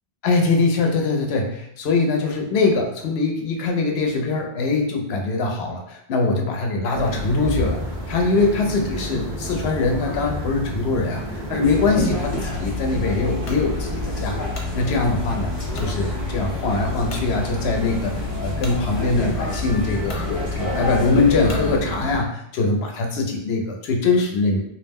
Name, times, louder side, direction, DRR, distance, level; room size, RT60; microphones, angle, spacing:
voice 1, 0.2-7.8 8.1-14.4 14.7-24.6, left 3 dB, 80° left, 2 dB, 0.8 m, -22 dB
sound 1, 6.9-22.2, right 1 dB, 50° right, 0.8 m, -31 dB
sound 2, 11.6-21.8, left 3 dB, 20° left, 0.7 m, -29 dB
sound 3, 13.4-13.7 14.2-14.8 15.7-16.0 16.5-16.6 17.1-17.3 18.6-18.8 19.6-19.7 20.0-20.3 21.5-21.7, left 1 dB, 55° left, 0.3 m, -37 dB
2.5 x 2.0 x 3.4 m, 0.74 s
omnidirectional pair, 1.1 m